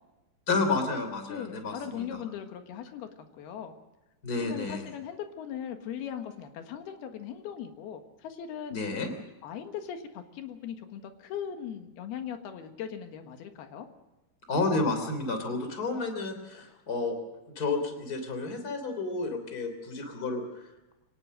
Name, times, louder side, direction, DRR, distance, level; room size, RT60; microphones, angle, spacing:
voice 1, 0.5-2.0 4.2-4.8 8.7-9.1 14.5-17.2 17.5-20.5, left 3 dB, 25° left, 7 dB, 3.1 m, -30 dB
voice 2, 1.3-3.7 4.4-9.1 9.4-13.9, left 8 dB, 85° left, 6 dB, 3.5 m, -39 dB
24.5 x 18.5 x 6.5 m, 1.0 s
omnidirectional pair, 4.4 m